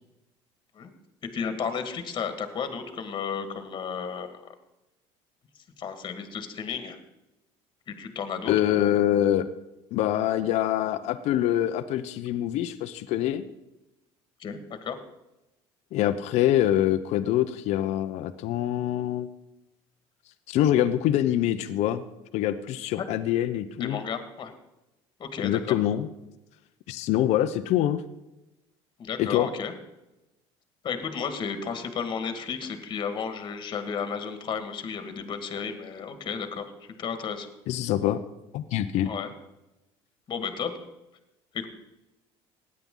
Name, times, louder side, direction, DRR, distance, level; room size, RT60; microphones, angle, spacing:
voice 1, 1.3-4.4 5.8-7.0 7.9-9.1 14.4-15.0 23.0-23.1 23.8-24.5 25.2-25.8 29.0-29.7 30.8-37.5 39.0-39.3 40.3-40.7 41.5-41.7, left 6 dB, 40° left, 8 dB, 1.9 m, -33 dB
voice 2, 8.5-9.5 9.9-13.4 15.9-19.3 20.5-22.0 22.3-24.0 25.4-26.1 26.9-28.0 29.2-29.5 37.7-38.2 38.5-39.1, left 12 dB, 70° left, 8 dB, 0.8 m, -25 dB
16.5 x 9.8 x 3.9 m, 0.95 s
cardioid pair, 115°, 12 cm